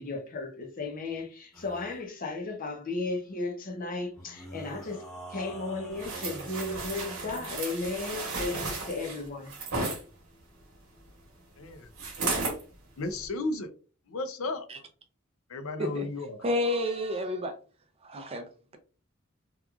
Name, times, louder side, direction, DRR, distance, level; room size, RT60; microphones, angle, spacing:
voice 1, 0.0-5.0 5.3-9.5, left 3 dB, 40° left, 0.6 m, -35 dB
sound 1, 1.5-2.0 4.1-7.6, right 1 dB, ahead, 1.0 m, -46 dB
sound 2, 6.0-10.0 12.0-12.6 13.1-13.3, right 3 dB, 80° right, 1.0 m, -34 dB
voice 2, 11.6-11.9 13.0-13.7 14.1-14.7 15.5-16.4, left 2 dB, 85° left, 0.5 m, -34 dB
voice 3, 16.4-17.6 18.0-18.8, left 1 dB, 30° right, 0.5 m, -30 dB
2.9 x 2.4 x 2.3 m
head